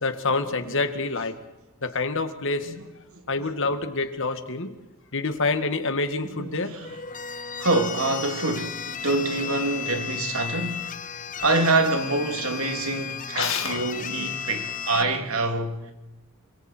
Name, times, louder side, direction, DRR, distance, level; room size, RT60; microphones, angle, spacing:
voice 1, 0.0-1.4 1.8-2.7 3.3-4.7 5.1-6.8 13.3-13.9, left 3 dB, 65° left, 2.0 m, -27 dB
voice 2, 6.2-7.0 7.6-11.0 11.4-15.9, right 2 dB, 80° right, 3.0 m, -26 dB
sound 1, 6.8-15.0, left 8 dB, 40° left, 0.9 m, -34 dB
28.0 x 26.0 x 4.5 m
head